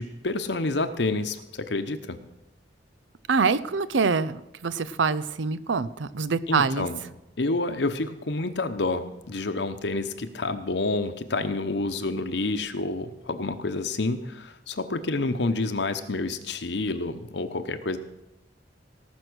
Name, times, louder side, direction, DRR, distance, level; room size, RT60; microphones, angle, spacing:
voice 1, 0.0-2.2 6.5-7.0 7.4-18.0, left 2 dB, 65° left, 8 dB, 0.9 m, -28 dB
voice 2, 3.3-6.9, right 5 dB, 85° right, 15 dB, 0.6 m, -25 dB
18.5 x 6.2 x 6.2 m, 0.89 s
head